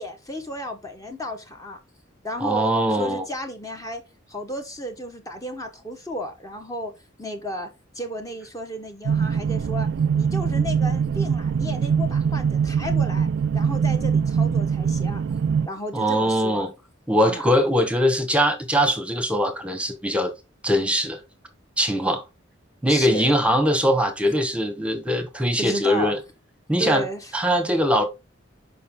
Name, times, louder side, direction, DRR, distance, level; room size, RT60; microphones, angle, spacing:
voice 1, 0.0-1.8 2.2-4.0 4.3-6.9 7.2-7.7 7.9-9.9 10.1-13.3 13.5-15.2 15.7-16.7 17.3-17.5 22.9-23.3 25.6-26.1 26.8-27.3, equal, 20° left, 1.1 m, -33 dB
voice 2, 2.4-3.2 15.9-16.7 17.1-20.3 20.6-21.2 21.8-22.2 22.8-26.2 26.7-27.0 27.3-28.0, equal, 5° right, 1.1 m, -21 dB
sound 1, 9.0-15.7, right 6 dB, 60° right, 0.3 m, -22 dB
6.5 x 5.3 x 3.5 m
head